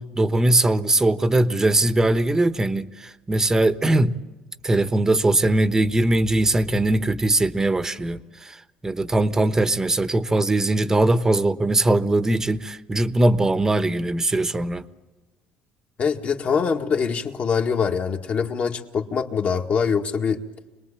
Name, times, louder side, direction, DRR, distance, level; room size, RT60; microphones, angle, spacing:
voice 1, 0.0-4.2 4.6-14.9, right 2 dB, 15° right, 12 dB, 1.0 m, -21 dB
voice 2, 16.0-20.4, left 6 dB, 40° left, 4 dB, 2.0 m, -23 dB
26.5 x 20.5 x 8.7 m, 1.2 s
cardioid pair, 105°, 4 cm